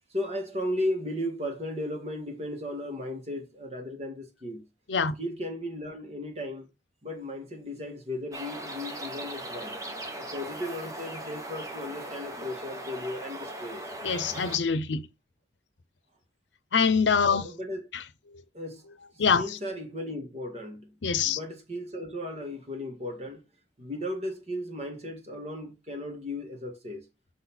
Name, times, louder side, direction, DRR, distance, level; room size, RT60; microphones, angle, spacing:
voice 1, 0.1-4.6 5.2-6.7 7.0-9.8 10.3-13.8 17.2-17.9 18.5-18.8 19.3-20.9 21.2-23.4 23.8-27.0, left 1 dB, 35° right, 1.7 m, -35 dB
sound 1, 8.3-14.6, right 1 dB, 20° right, 0.9 m, -39 dB
voice 2, 14.0-15.1 16.7-17.5 17.9-18.0 19.2-19.6 21.0-21.4, left 6 dB, 85° left, 0.7 m, -24 dB
6.3 x 4.2 x 4.2 m
head